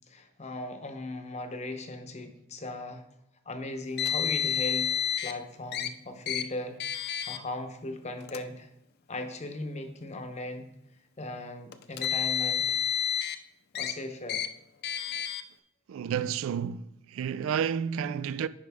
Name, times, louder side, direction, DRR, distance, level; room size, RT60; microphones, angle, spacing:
voice 1, 0.1-3.0 3.5-4.9 5.2-8.7 9.1-10.7 11.2-12.8 13.7-14.4, left 2 dB, 35° left, 0.8 m, -38 dB
Car, 4.0-5.3 5.7-5.9 6.3-6.4 6.8-7.4 8.2-8.4 9.3-9.4 11.7-13.4 13.8-13.9 14.3-14.5 14.8-15.4, left 9 dB, 50° left, 0.4 m, -29 dB
voice 2, 15.9-18.5, right 8 dB, 75° right, 0.3 m, -31 dB
9.9 x 5.1 x 3.5 m
head